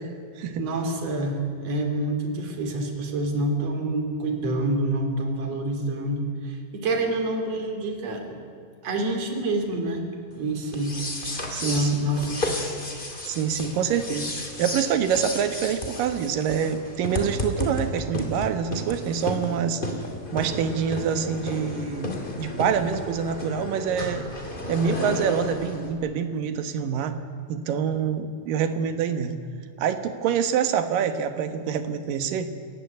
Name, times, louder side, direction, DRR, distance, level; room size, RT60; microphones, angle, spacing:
voice 1, 0.6-8.4 8.8-10.0 10.3-11.0 11.6-12.4, right 2 dB, 45° right, 5 dB, 3.8 m, -27 dB
sound 1, 10.7-25.9, left 1 dB, 15° left, 2.5 m, -32 dB
voice 2, 11.5-12.0 13.3-19.8 20.3-24.3 24.7-27.2 27.5-29.4 29.8-32.5, right 7 dB, 70° right, 10 dB, 2.9 m, -26 dB
27.5 x 15.5 x 9.6 m, 2.2 s
omnidirectional pair, 4.2 m